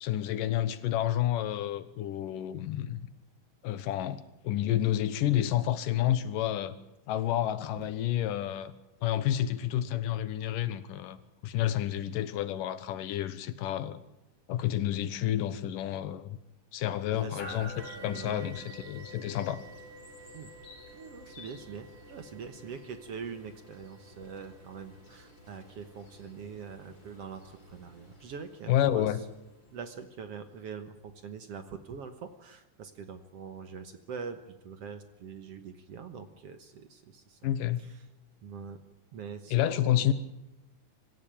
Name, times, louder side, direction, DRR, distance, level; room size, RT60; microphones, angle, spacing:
voice 1, 0.0-3.0 3.6-6.8 7.1-8.7 9.0-11.2 11.4-14.0 14.5-16.4 16.7-19.6 28.7-29.2 37.4-37.8 39.5-40.1, left 12 dB, 90° left, 2.7 m, -29 dB
sound 1, 17.4-30.4, left 1 dB, 40° left, 5.9 m, -50 dB
sound 2, 17.8-30.7 31.5-31.6 32.2-32.3, right 6 dB, 25° right, 3.2 m, -57 dB
voice 2, 18.0-18.8 20.3-20.5 20.9-29.1 29.7-37.4 37.8-38.0 38.4-38.8 39.1-40.1, right 6 dB, 60° right, 1.9 m, -44 dB
25.0 x 15.5 x 9.0 m
omnidirectional pair, 3.7 m